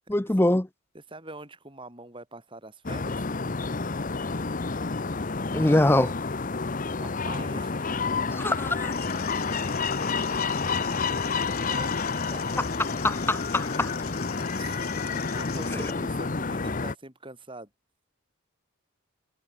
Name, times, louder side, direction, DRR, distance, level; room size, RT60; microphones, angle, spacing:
voice 1, 0.1-0.7 5.5-6.1 8.4-8.9 13.0-13.9, left 1 dB, 10° left, 0.6 m, -23 dB
voice 2, 0.9-3.2 7.0-7.9 11.6-12.0 12.3-12.7 14.5-17.7, right 2 dB, 25° right, 6.4 m, -44 dB
sound 1, 2.9-17.0, left 4 dB, 40° left, 0.8 m, -29 dB
sound 2, 8.9-15.9, left 10 dB, 80° left, 5.5 m, -43 dB
head